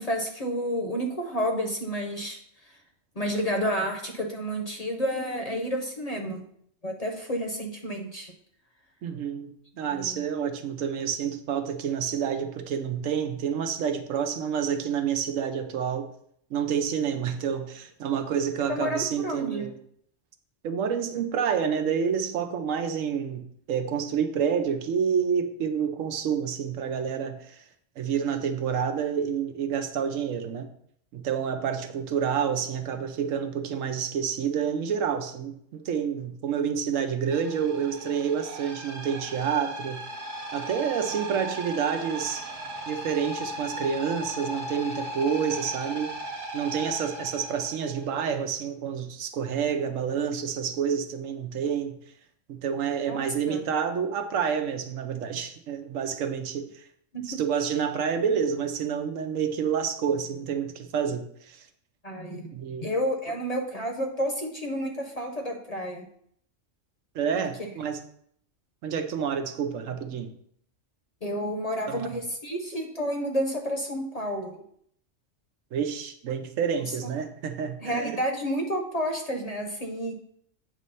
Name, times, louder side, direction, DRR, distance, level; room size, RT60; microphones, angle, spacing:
voice 1, 0.0-2.4 3.2-6.4 6.8-8.3 9.9-10.2 18.7-19.7 53.1-53.6 57.1-57.4 62.0-62.5 62.8-66.1 71.2-74.6 77.8-80.1, equal, 35° left, 3 dB, 0.8 m, -30 dB
voice 2, 9.0-16.1 16.5-19.8 20.6-27.6 28.0-30.7 31.1-40.0 40.5-42.5 42.9-46.1 46.5-51.9 52.5-56.8 57.2-61.6 62.5-63.0 67.1-68.0 68.8-70.3 71.9-72.1 75.7-78.2, right 7 dB, 85° right, 7 dB, 1.1 m, -28 dB
sound 1, 37.3-48.1, right 1 dB, 60° right, 1.4 m, -37 dB
8.3 x 3.1 x 5.5 m, 0.66 s
omnidirectional pair, 1.3 m